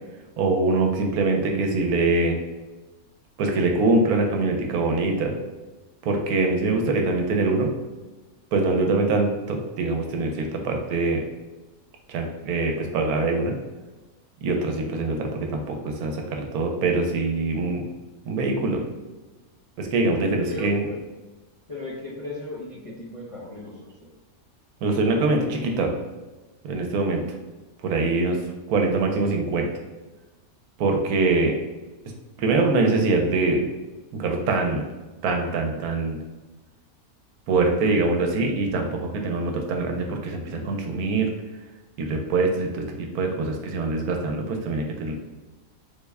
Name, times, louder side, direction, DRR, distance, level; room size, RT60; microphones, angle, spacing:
voice 1, 0.4-2.4 3.4-5.3 6.0-7.7 8.5-11.3 12.1-13.6 14.4-17.9 18.3-18.8 19.8-20.9 24.8-25.9 26.6-27.2 27.8-28.4 28.7-29.7 30.8-31.6 32.4-33.6 34.1-34.8 35.2-36.2 37.5-41.3 42.0-45.1, right 3 dB, 85° right, 2 dB, 1.1 m, -23 dB
voice 2, 20.3-21.0 21.7-24.1, left 1 dB, 45° left, -8 dB, 0.4 m, -36 dB
3.5 x 2.1 x 3.4 m, 1.2 s
omnidirectional pair, 1.5 m